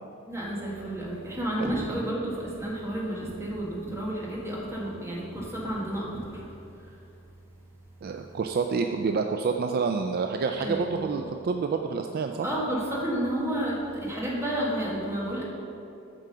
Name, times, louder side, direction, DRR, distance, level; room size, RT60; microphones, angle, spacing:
voice 1, 0.3-6.4 6.8-7.0 10.5-11.1 12.4-15.4, right 1 dB, 15° right, -5 dB, 1.6 m, -31 dB
voice 2, 8.0-12.5, right 5 dB, 45° right, 5 dB, 0.3 m, -28 dB
7.6 x 4.8 x 6.6 m, 2.8 s
head